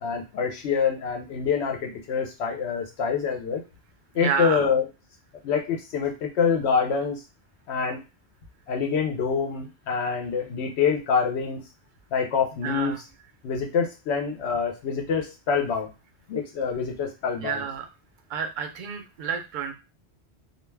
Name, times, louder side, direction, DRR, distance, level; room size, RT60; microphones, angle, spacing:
voice 1, 0.0-3.6 4.1-4.9 5.4-7.2 7.7-8.0 8.7-11.6 12.1-13.0 13.4-15.9 16.3-17.6, left 6 dB, 80° left, 3 dB, 0.9 m, -26 dB
voice 2, 4.2-4.6 12.6-13.0 17.4-17.9 18.3-19.7, right 7 dB, 60° right, 5 dB, 0.6 m, -30 dB
2.4 x 2.2 x 3.2 m, 0.28 s
omnidirectional pair, 1.1 m